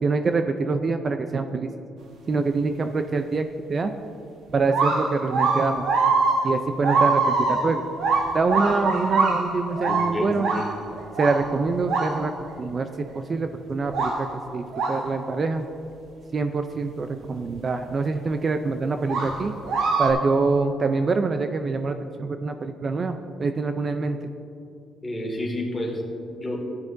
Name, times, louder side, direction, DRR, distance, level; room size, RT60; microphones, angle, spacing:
voice 1, 0.0-1.7 2.3-3.9 4.5-5.8 6.4-7.8 8.3-10.5 11.2-12.3 12.6-15.7 16.3-19.5 20.0-24.2, right 4 dB, 40° right, 7 dB, 0.5 m, -25 dB
sound 1, 4.5-12.5 13.1-13.2 13.9-14.2 14.7-15.1 17.5-17.6 19.1-20.1, right 4 dB, 75° right, 1.2 m, -23 dB
voice 2, 9.9-10.7 25.0-26.6, left 1 dB, 20° left, -1 dB, 2.1 m, -30 dB
13.0 x 9.7 x 2.6 m, 2.6 s
cardioid pair, 90°, 0 cm